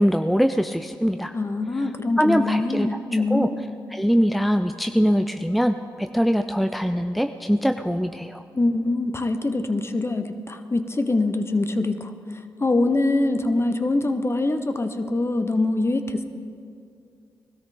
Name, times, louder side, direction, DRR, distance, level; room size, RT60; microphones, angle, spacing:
voice 1, 0.0-1.3 1.8-1.9 2.2-3.5 3.9-8.4, equal, ahead, 8 dB, 0.5 m, -22 dB
voice 2, 1.3-3.7 8.5-12.1 12.6-16.2, left 2 dB, 30° left, 8 dB, 1.0 m, -24 dB
19.5 x 13.0 x 3.9 m, 2.4 s
cardioid pair, 55°, 9 cm